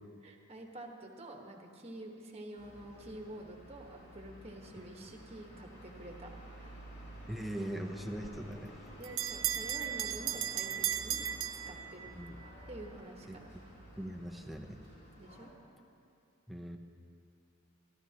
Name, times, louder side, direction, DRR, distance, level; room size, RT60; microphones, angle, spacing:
voice 1, 0.2-6.3 6.6-6.7 8.9-12.1 12.7-13.5 15.2-15.5, right 1 dB, 30° right, 2 dB, 1.3 m, -48 dB
sound 1, 2.6-15.5, equal, 45° left, 3.2 m, -52 dB
voice 2, 7.3-8.8 12.1-12.4 13.3-13.4 14.0-14.8 16.5-16.8, right 1 dB, ahead, 2 dB, 0.7 m, -41 dB
Bell, 8.2-12.3, right 10 dB, 65° right, 0.6 m, -36 dB
25.0 x 13.0 x 2.9 m, 2.6 s
head